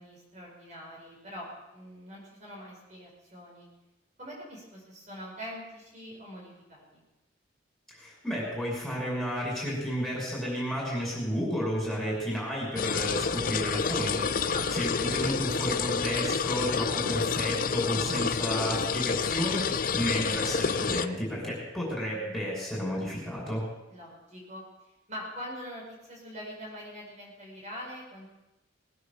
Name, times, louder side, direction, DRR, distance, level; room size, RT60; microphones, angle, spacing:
voice 1, 0.0-1.5 1.7-3.7 4.2-7.0 14.5-14.7 23.9-24.6 25.1-28.3, equal, 40° right, -3 dB, 5.1 m, -43 dB
voice 2, 7.9-23.6, equal, ahead, -5 dB, 6.1 m, -32 dB
sound 1, 12.8-21.1, left 6 dB, 50° left, 0.5 m, -29 dB
20.0 x 9.6 x 7.1 m, 0.95 s
head